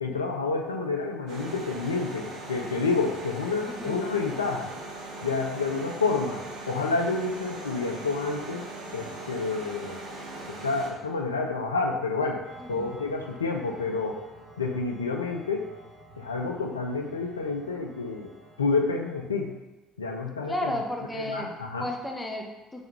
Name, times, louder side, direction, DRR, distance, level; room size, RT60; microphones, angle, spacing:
voice 1, 0.0-4.7 5.2-8.7 8.9-10.0 10.5-12.4 12.7-14.2 14.6-15.7 16.2-18.3 18.6-19.5 20.0-20.8 21.1-21.9, left 4 dB, 80° left, 2 dB, 0.3 m, -29 dB
sound 1, 1.3-10.9, right 2 dB, 55° right, 0.6 m, -40 dB
voice 2, 3.7-4.0 12.6-12.9 20.5-21.5 21.8-22.8, left 1 dB, 15° left, 1 dB, 0.6 m, -33 dB
sound 2, 12.4-19.5, equal, 85° right, 1.1 m, -50 dB
2.9 x 2.2 x 3.6 m, 1.1 s
figure-of-eight pair, 55°, 0 cm